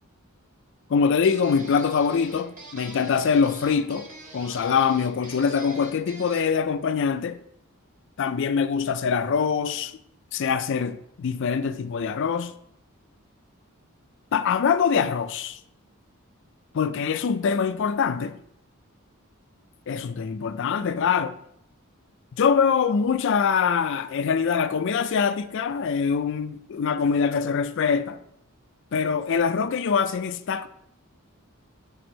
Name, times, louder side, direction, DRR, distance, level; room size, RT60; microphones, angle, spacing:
voice 1, 0.9-4.1 4.3-7.4 8.2-9.9 10.3-12.5 14.3-15.6 16.7-18.4 19.9-21.3 22.4-28.2 28.9-30.7, left 6 dB, 60° left, 0.4 m, -24 dB
sound 1, 1.2-6.6, right 2 dB, 40° right, 1.2 m, -44 dB
6.0 x 3.5 x 5.2 m
head